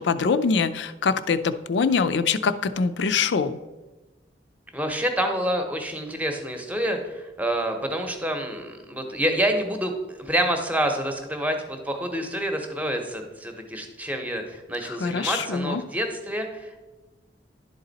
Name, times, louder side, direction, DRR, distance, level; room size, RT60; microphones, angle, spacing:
voice 1, 0.0-3.6 14.8-15.8, left 5 dB, 85° left, 12 dB, 0.4 m, -24 dB
voice 2, 4.7-16.8, right 1 dB, 10° right, 4 dB, 0.8 m, -28 dB
11.0 x 4.0 x 4.0 m, 1.1 s
head